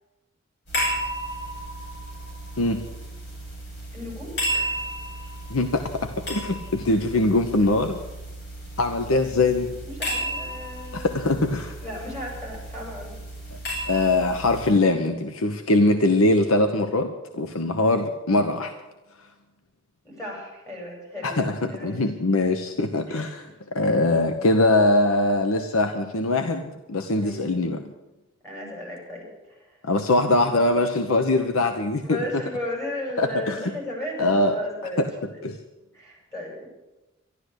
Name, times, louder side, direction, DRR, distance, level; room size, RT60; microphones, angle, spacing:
sound 1, 0.7-14.7, right 1 dB, 55° left, 6.1 m, -33 dB
voice 1, 3.9-4.7 9.8-11.1 11.8-13.1 20.0-22.1 23.1-23.5 27.1-27.5 28.4-29.8 32.0-35.4 35.9-36.7, left 1 dB, 15° left, -2 dB, 6.5 m, -35 dB
voice 2, 5.5-5.9 6.3-8.0 8.8-9.7 10.9-11.8 13.9-18.7 21.2-23.4 23.7-27.8 29.8-32.2 33.2-33.6 34.2-34.6 35.0-35.1 35.4-35.6, left 2 dB, 85° left, 7 dB, 1.0 m, -22 dB
12.5 x 12.0 x 8.3 m, 1.0 s
head